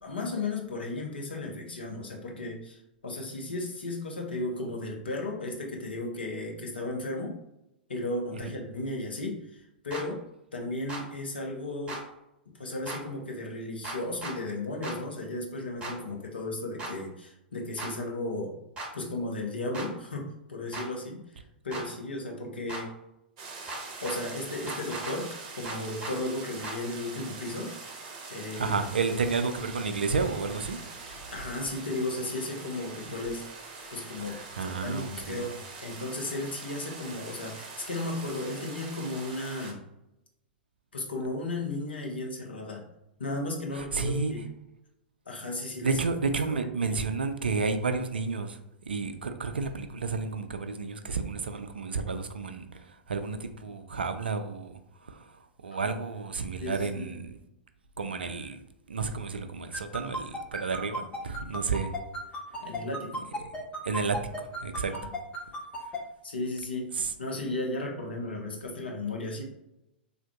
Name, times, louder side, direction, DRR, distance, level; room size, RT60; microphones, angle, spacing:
voice 1, 0.0-7.3 7.9-10.2 10.5-12.0 12.6-18.5 18.9-21.2 21.6-22.9 24.0-25.3 25.5-27.7 28.3-28.8 29.0-29.1 31.1-33.4 33.9-35.5 35.8-39.8 40.9-42.8 43.2-44.4 45.3-45.9 46.5-47.0 55.7-55.9 56.6-57.1 62.6-63.3 64.9-65.1 66.2-66.9 67.2-69.4, left 2 dB, 75° left, 0 dB, 0.8 m, -35 dB
sound 1, 9.9-10.0 10.9-11.0 11.9-12.0 12.9-13.0 13.8-14.4 14.8-15.0 15.8-15.9 16.8-16.9 17.8-17.9 18.8-18.9 19.7-19.9 20.7-20.9 21.7-21.9 22.7-22.8 23.7-24.2 24.7-25.2 25.6-26.2 26.6-26.8, right 2 dB, 20° right, 0.9 m, -37 dB
sound 2, 23.4-39.7, right 3 dB, 45° right, 0.7 m, -43 dB
voice 2, 28.6-31.3 34.2-35.4 43.7-44.3 45.8-48.6 48.9-54.7 55.0-57.4 58.0-58.6 58.9-61.9 63.4-63.5 63.8-64.9 66.9-67.1, right 4 dB, 75° right, 8 dB, 0.3 m, -31 dB
sound 3, 59.7-66.0, equal, 20° left, 0.7 m, -34 dB
3.5 x 2.5 x 2.3 m, 0.85 s
figure-of-eight pair, 100°, 6 cm